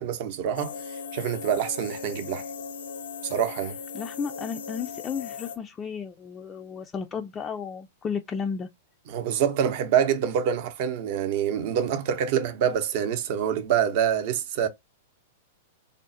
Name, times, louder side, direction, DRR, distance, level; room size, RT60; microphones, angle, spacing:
voice 1, 0.0-2.4 3.2-3.7 9.1-14.7, right 9 dB, 55° right, 0.6 m, -26 dB
sound 1, 0.5-5.6, left 6 dB, 75° left, 0.6 m, -38 dB
voice 2, 3.9-8.7, left 6 dB, 20° left, 0.3 m, -33 dB
3.5 x 2.0 x 2.6 m
hypercardioid pair, 125°, 0 cm